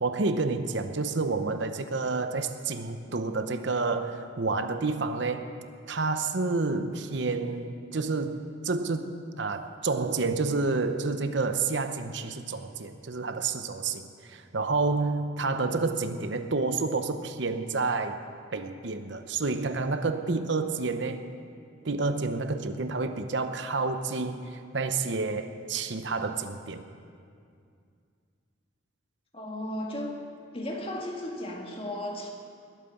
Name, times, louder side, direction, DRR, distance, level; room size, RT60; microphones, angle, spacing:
voice 1, 0.0-5.5 5.9-18.2 18.5-21.2 21.8-26.8, right 3 dB, 65° right, 8 dB, 0.8 m, -29 dB
voice 2, 29.3-30.2 30.5-32.3, left 1 dB, 30° left, 1 dB, 1.9 m, -35 dB
20.5 x 9.0 x 7.1 m, 2.3 s
head